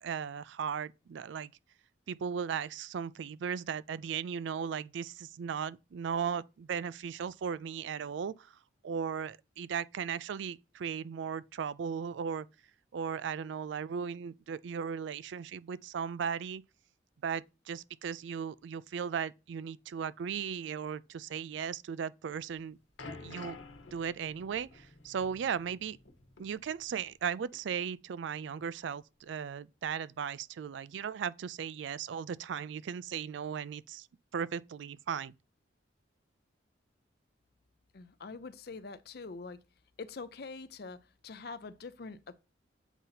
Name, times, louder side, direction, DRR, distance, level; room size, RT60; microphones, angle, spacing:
voice 1, 0.0-1.5 2.1-8.5 8.8-12.5 12.9-16.6 17.2-22.8 23.2-23.6 23.9-26.0 26.4-34.1 34.3-35.3, right 7 dB, 70° right, 0.3 m, -37 dB
sound 1, 22.4-27.3 27.5-27.7 28.4-28.5, left 3 dB, 80° left, 1.2 m, -50 dB
voice 2, 37.9-39.6 40.0-42.3, left 4 dB, 55° left, 0.5 m, -44 dB
8.1 x 2.8 x 5.6 m
head